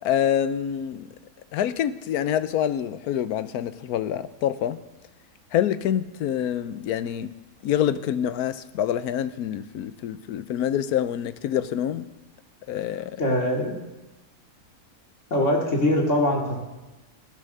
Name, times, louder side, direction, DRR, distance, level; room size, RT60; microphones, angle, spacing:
voice 1, 0.0-1.1 1.5-4.8 5.5-7.3 7.6-12.1 12.7-13.2, left 10 dB, 80° left, 1.2 m, -26 dB
voice 2, 13.2-13.8 15.3-16.6, left 1 dB, 50° left, 2.7 m, -22 dB
14.5 x 10.0 x 6.6 m
omnidirectional pair, 1.6 m